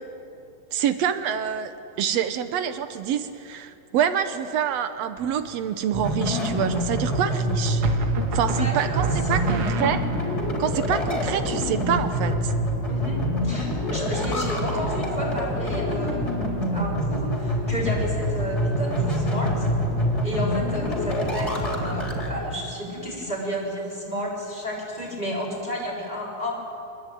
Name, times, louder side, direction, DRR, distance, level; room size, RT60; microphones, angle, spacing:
voice 1, 0.7-1.7 2.0-7.8 8.3-10.0 10.6-12.5, right 9 dB, 80° right, 10 dB, 1.5 m, -26 dB
sound 1, 5.2-5.7 7.8-10.5, right 5 dB, 55° right, 1.8 m, -29 dB
sound 2, 5.9-22.3, equal, 20° left, 3.9 m, -26 dB
voice 2, 8.6-9.6 12.9-19.7 20.2-26.6, equal, 10° right, -4 dB, 6.8 m, -32 dB
25.5 x 21.0 x 9.2 m, 2.8 s
omnidirectional pair, 4.2 m